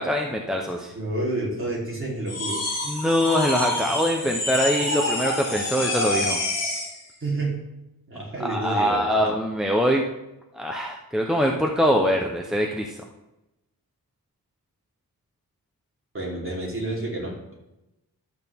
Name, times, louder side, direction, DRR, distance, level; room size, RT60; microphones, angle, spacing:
voice 1, 0.0-0.9 2.9-6.4 8.4-10.1 10.5-12.9, equal, ahead, 0 dB, 0.7 m, -23 dB
voice 2, 0.9-2.6 7.2-7.6 8.1-9.3 16.1-17.5, right 2 dB, 35° right, -4 dB, 3.5 m, -29 dB
sound 1, 2.3-7.0, left 2 dB, 45° left, 3.0 m, -27 dB
12.0 x 8.4 x 3.6 m, 0.93 s
wide cardioid pair, 150°, 37 cm